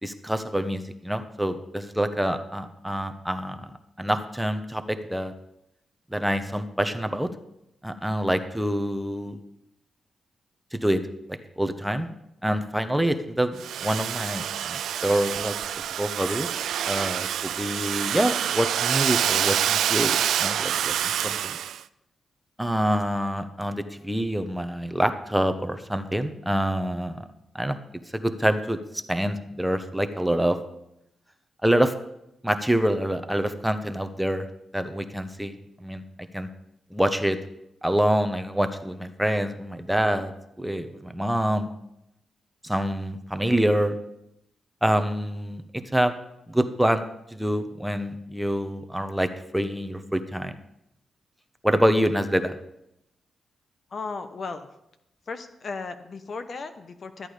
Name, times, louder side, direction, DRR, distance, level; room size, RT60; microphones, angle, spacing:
voice 1, 0.0-3.7 4.0-5.3 6.1-7.3 7.8-9.4 10.7-11.0 11.6-12.1 12.4-15.5 16.0-16.5 16.9-21.5 22.6-27.3 27.5-27.8 28.1-28.8 29.1-30.6 31.6-31.9 32.4-34.5 34.7-35.5 35.8-36.0 36.3-36.5 36.9-37.4 37.8-40.3 40.6-41.7 42.6-44.0 44.8-45.6 45.9-46.1 46.5-47.0 47.3-50.5 51.6-52.5, equal, 5° right, 8 dB, 0.9 m, -26 dB
Domestic sounds home sounds, 13.6-21.8, right 10 dB, 85° right, 0.3 m, -27 dB
voice 2, 53.9-54.7 55.3-57.3, left 4 dB, 50° left, 9 dB, 0.9 m, -35 dB
13.0 x 8.9 x 5.0 m, 0.82 s
cardioid pair, 75°, 0 cm